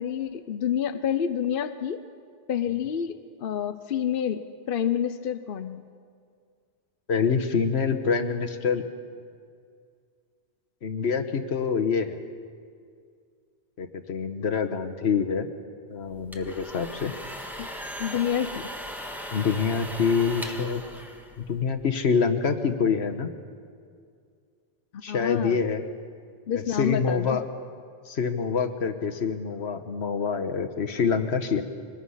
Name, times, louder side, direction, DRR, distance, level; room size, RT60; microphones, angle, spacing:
voice 1, 0.0-2.0 2.5-5.8 17.6-17.7 18.0-18.7 24.9-25.6 26.5-27.4, left 9 dB, 60° left, 10 dB, 0.8 m, -28 dB
voice 2, 7.1-8.8 10.8-12.2 13.8-15.5 15.9-17.1 19.3-20.8 21.4-23.3 25.0-25.8 26.5-27.4 28.1-31.6, left 5 dB, 75° left, 8 dB, 1.4 m, -26 dB
sound 1, 16.1-21.8, equal, ahead, 1.5 m, -38 dB
23.0 x 20.0 x 5.6 m, 2.2 s
omnidirectional pair, 1.1 m